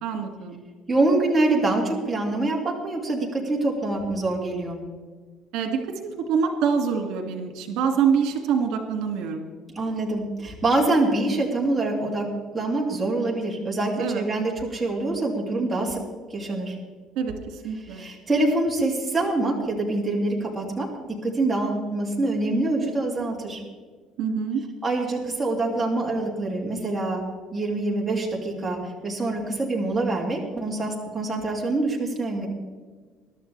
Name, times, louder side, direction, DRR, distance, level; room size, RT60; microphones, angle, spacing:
voice 1, 0.0-0.6 5.5-9.4 14.0-14.2 17.2-17.4 17.6-18.0 24.2-24.6, right 6 dB, 80° right, 4 dB, 2.2 m, -25 dB
voice 2, 0.9-4.8 9.7-12.3 12.5-16.0 16.3-16.8 17.9-20.9 21.2-23.6 24.8-27.2 27.5-32.5, right 2 dB, 10° right, -3 dB, 2.7 m, -25 dB
22.5 x 12.0 x 3.4 m, 1.5 s
cardioid pair, 175°, 0 cm